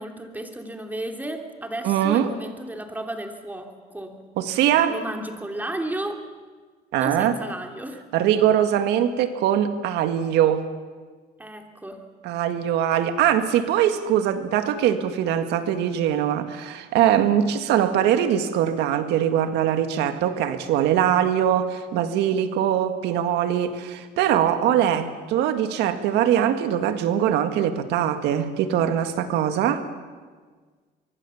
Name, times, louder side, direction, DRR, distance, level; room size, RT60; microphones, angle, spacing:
voice 1, 0.0-4.2 4.9-6.2 7.0-8.0 11.4-12.1, right 1 dB, 10° right, 4 dB, 3.0 m, -33 dB
voice 2, 1.8-2.3 4.4-4.9 6.9-7.4 8.1-10.6 12.2-29.9, right 10 dB, 85° right, 8 dB, 1.9 m, -22 dB
24.5 x 23.5 x 7.2 m, 1.5 s
cardioid pair, 110°, 17 cm